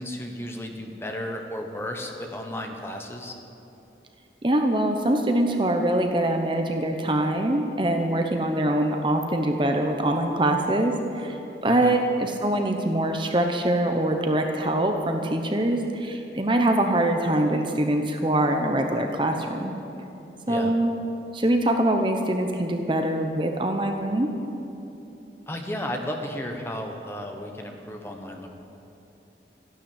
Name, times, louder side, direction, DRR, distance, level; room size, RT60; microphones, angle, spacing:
voice 1, 0.0-3.3 11.8-11.9 20.4-20.7 25.5-28.5, left 1 dB, 15° left, 2 dB, 1.3 m, -33 dB
voice 2, 4.4-19.7 20.5-21.0 21.3-24.3, right 1 dB, 25° right, 4 dB, 0.9 m, -24 dB
13.5 x 11.5 x 9.1 m, 3.0 s
head